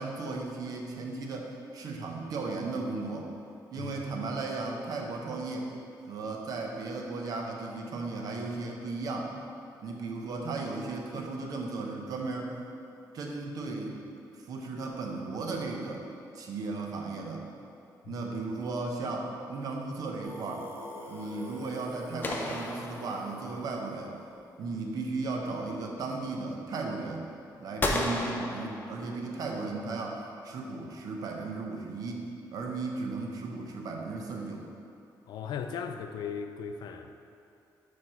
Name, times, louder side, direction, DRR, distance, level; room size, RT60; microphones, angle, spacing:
voice 1, 0.0-3.3 3.7-5.7 6.1-9.3 9.8-12.6 13.1-14.0 14.5-16.1 16.3-17.5 18.1-20.7 21.1-24.2 24.6-27.3 27.6-34.7, right 3 dB, 60° right, 1 dB, 0.7 m, -35 dB
voice 2, 18.0-18.5 35.3-37.3, left 6 dB, 75° left, 8 dB, 0.4 m, -38 dB
Singing, 20.2-25.0, equal, 30° right, 0.9 m, -46 dB
sound 1, 22.2-23.7 27.8-29.4, left 2 dB, 25° left, 0.6 m, -33 dB
4.6 x 4.6 x 5.5 m, 2.7 s
cardioid pair, 160°, 7 cm